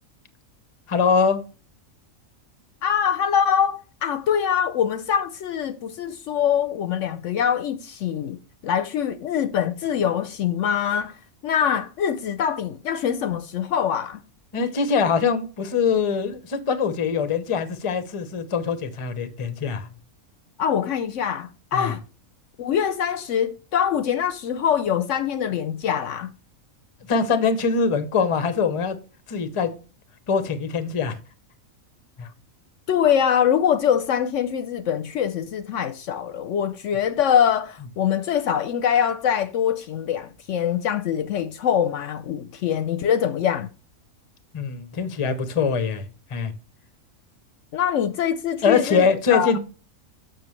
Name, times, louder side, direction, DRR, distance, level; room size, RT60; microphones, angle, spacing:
voice 1, 0.9-1.4 14.5-19.9 21.7-21.9 27.1-29.0 29.3-29.7 30.3-31.2 32.2-32.3 44.5-46.5 48.6-49.6, left 5 dB, 30° left, 0.6 m, -23 dB
voice 2, 2.8-8.4 8.6-11.1 11.4-14.2 20.6-22.0 22.6-26.3 32.9-43.7 47.7-49.5, left 8 dB, 70° left, 0.8 m, -23 dB
7.0 x 5.9 x 3.1 m
omnidirectional pair, 1.4 m